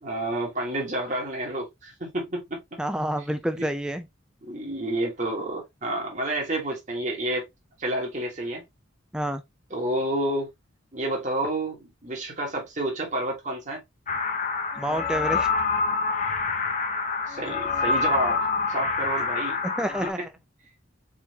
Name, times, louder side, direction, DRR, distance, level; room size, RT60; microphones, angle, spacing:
voice 1, 0.0-2.8 3.2-3.3 3.6-3.7 4.4-7.5 7.8-8.6 9.7-10.5 10.9-13.8 17.3-19.6, right 1 dB, 35° right, 1.5 m, -29 dB
voice 2, 2.8-4.1 9.1-9.4 14.8-15.5 19.6-20.3, equal, 5° right, 0.4 m, -28 dB
sound 1, 14.1-20.1, left 4 dB, 35° left, 0.7 m, -26 dB
4.3 x 3.8 x 2.9 m
head